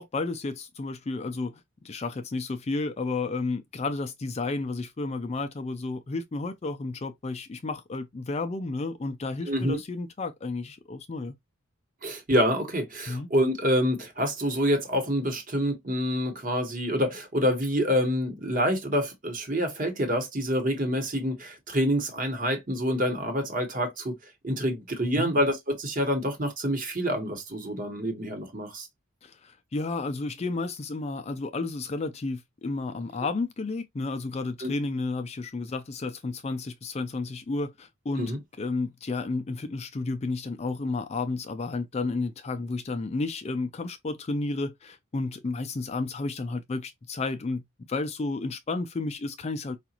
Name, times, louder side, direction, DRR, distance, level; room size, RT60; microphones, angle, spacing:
voice 1, 0.0-11.3 13.1-13.3 25.2-25.3 29.2-38.3 38.6-49.8, left 3 dB, 30° left, 0.3 m, -32 dB
voice 2, 9.5-9.8 12.0-24.1 24.4-28.9 34.6-34.7 38.2-38.4, equal, 40° right, 1.1 m, -27 dB
4.8 x 2.4 x 2.9 m
head